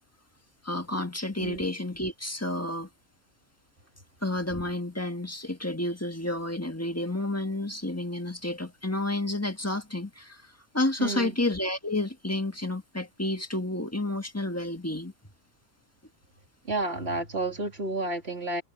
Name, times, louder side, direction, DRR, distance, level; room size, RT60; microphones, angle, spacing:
voice 1, 0.6-2.9 4.2-10.4 10.7-15.1, left 1 dB, 15° left, 1.6 m, -30 dB
voice 2, 11.0-11.3 16.7-18.6, right 2 dB, 65° right, 3.4 m, -31 dB
omnidirectional pair, 1.1 m